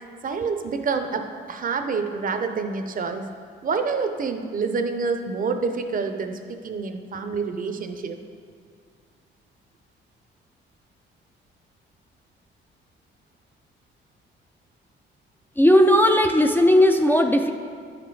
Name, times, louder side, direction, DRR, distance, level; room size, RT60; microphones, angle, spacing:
voice 1, 0.2-3.3 3.6-8.2, right 4 dB, 45° right, 7 dB, 0.6 m, -27 dB
voice 2, 15.6-17.5, left 1 dB, 10° left, 5 dB, 0.4 m, -17 dB
9.4 x 5.1 x 4.7 m, 2.1 s
cardioid pair, 90°, 20 cm